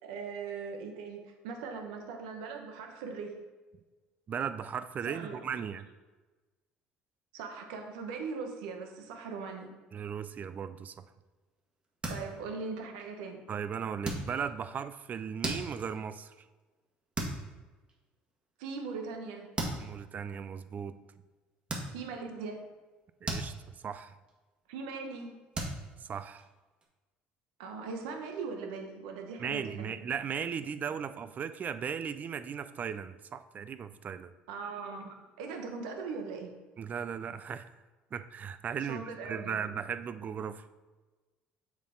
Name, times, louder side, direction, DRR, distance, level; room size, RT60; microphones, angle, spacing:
voice 1, 0.0-3.4 5.1-5.4 7.3-9.7 12.1-13.4 18.6-19.5 21.9-22.7 24.7-25.5 27.6-30.0 34.5-36.5 38.8-39.6, right 4 dB, 85° right, 4 dB, 1.0 m, -40 dB
voice 2, 4.3-5.9 9.9-11.1 13.5-16.3 19.8-21.0 23.2-23.5 23.8-24.1 26.0-26.5 29.4-34.3 36.8-37.7 38.1-40.6, right 7 dB, 40° right, 12 dB, 0.4 m, -37 dB
sound 1, 11.8-12.6 13.0-13.3 14.0-14.7 15.2-16.1 16.6-16.9 17.1-17.5 17.9-18.0 19.1-19.2 19.5-19.9 20.6-20.7 21.7-22.3 22.7-24.0 24.3-24.6 24.9-25.0 25.5-26.9, right 2 dB, 25° right, 1.7 m, -37 dB
7.2 x 4.2 x 3.9 m, 1.2 s
hypercardioid pair, 75°, 4 cm